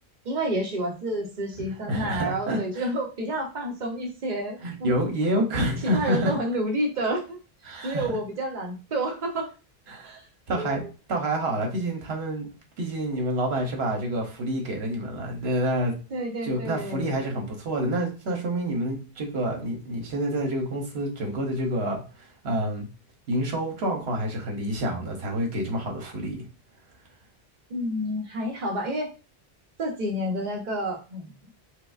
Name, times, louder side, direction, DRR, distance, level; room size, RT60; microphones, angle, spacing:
voice 1, 0.2-4.9 5.3-7.4 7.8-9.5 10.0-10.2 10.6-10.9 16.1-17.1 27.7-29.1 29.8-31.3, right 1 dB, 50° right, 1 dB, 0.9 m, -29 dB
voice 2, 1.8-2.8 4.6-6.3 7.6-8.2 9.9-10.2 10.5-10.8 11.1-12.5 12.8-15.9 16.4-22.9 23.3-26.4, right 1 dB, 80° right, 2 dB, 1.1 m, -28 dB
4.6 x 2.1 x 2.4 m, 0.33 s
omnidirectional pair, 1.1 m